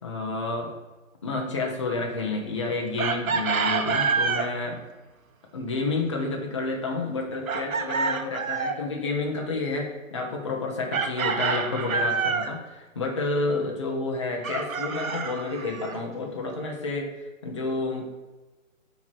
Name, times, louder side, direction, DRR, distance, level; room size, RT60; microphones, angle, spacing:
voice 1, 0.0-0.7 1.2-4.8 5.5-18.0, left 3 dB, 25° left, 0 dB, 0.5 m, -30 dB
Chicken rooster, 3.0-4.5 7.5-8.8 10.9-12.5 14.4-16.0, right 5 dB, 85° right, 0.8 m, -27 dB
8.2 x 3.0 x 4.5 m, 1.2 s
hypercardioid pair, 150°, 40 cm